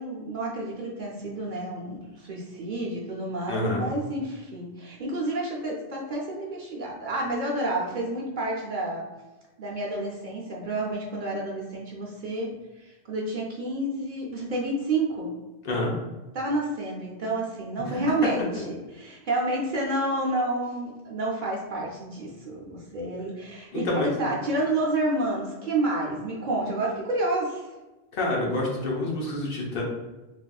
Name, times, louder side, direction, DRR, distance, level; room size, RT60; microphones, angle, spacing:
voice 1, 0.0-9.0 9.6-15.3 16.3-27.7, right 2 dB, 60° right, -2 dB, 0.6 m, -29 dB
voice 2, 3.5-3.8 15.6-15.9 17.9-18.0 23.7-24.1 28.1-29.8, left 2 dB, 65° left, -2 dB, 0.8 m, -27 dB
3.4 x 2.4 x 2.2 m, 1.1 s
omnidirectional pair, 1.1 m